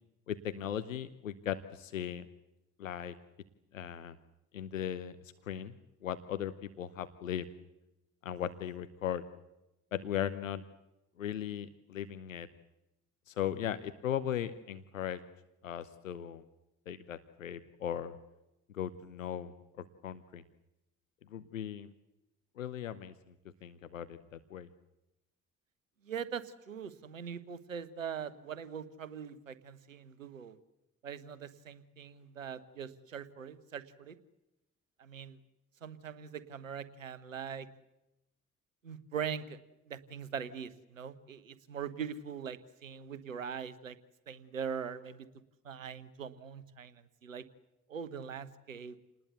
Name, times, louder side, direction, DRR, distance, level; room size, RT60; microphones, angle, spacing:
voice 1, 0.3-2.3 2.8-3.2 3.7-4.2 4.5-5.2 5.4-5.8 6.0-7.5 8.2-9.2 9.9-10.6 11.2-12.5 13.3-15.2 15.6-16.4 16.9-18.2 18.7-20.4 21.3-21.9 22.6-23.3 23.6-24.7, left 10 dB, 85° left, 13 dB, 0.8 m, -38 dB
voice 2, 26.0-30.6 31.0-34.2 35.0-35.4 35.8-37.7 38.8-39.6 39.9-44.0 44.3-45.3 45.6-47.4 47.9-48.9, right 7 dB, 90° right, 16 dB, 1.1 m, -42 dB
28.5 x 20.0 x 8.1 m, 0.93 s
figure-of-eight pair, 40°, 38 cm